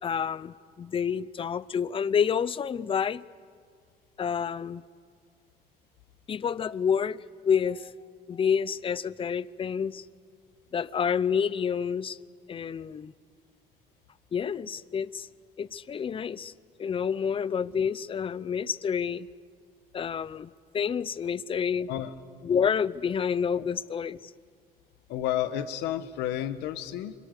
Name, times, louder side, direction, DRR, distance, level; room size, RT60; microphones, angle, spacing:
voice 1, 0.0-3.2 4.2-4.8 6.3-7.9 8.3-10.1 10.7-12.2 12.5-13.1 14.3-15.3 15.6-16.5 16.8-19.3 19.9-21.9 22.4-24.3, left 7 dB, 30° left, 0.7 m, -28 dB
voice 2, 25.1-27.1, left 11 dB, 90° left, 1.4 m, -31 dB
28.0 x 26.0 x 6.8 m
cardioid pair, 110°, 17 cm